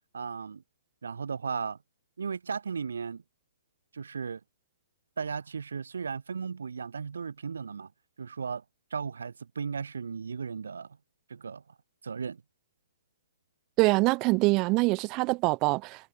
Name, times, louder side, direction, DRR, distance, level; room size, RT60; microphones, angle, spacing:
voice 1, 0.1-0.6 1.0-1.8 2.2-3.2 3.9-4.4 5.2-7.9 8.2-8.6 8.9-11.0 11.3-11.6 12.0-12.4, right 5 dB, 80° right, 0.6 m, -35 dB
voice 2, 13.8-16.1, right 25 dB, 25° right, 0.4 m, -24 dB
hypercardioid pair, 150°, 0 cm